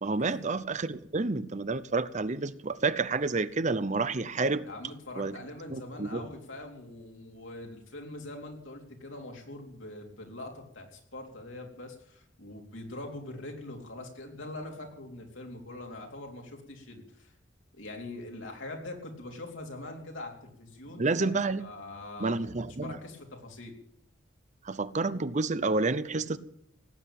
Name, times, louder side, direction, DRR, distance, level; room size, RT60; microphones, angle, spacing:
voice 1, 0.0-4.7 5.2-5.4 5.7-6.2 21.0-21.6 22.2-23.0 24.6-26.4, right 3 dB, 40° right, 14 dB, 0.7 m, -29 dB
voice 2, 4.7-17.3 17.7-22.5 22.8-23.7, left 2 dB, 85° left, 1 dB, 3.9 m, -43 dB
18.0 x 8.9 x 9.1 m, 0.74 s
head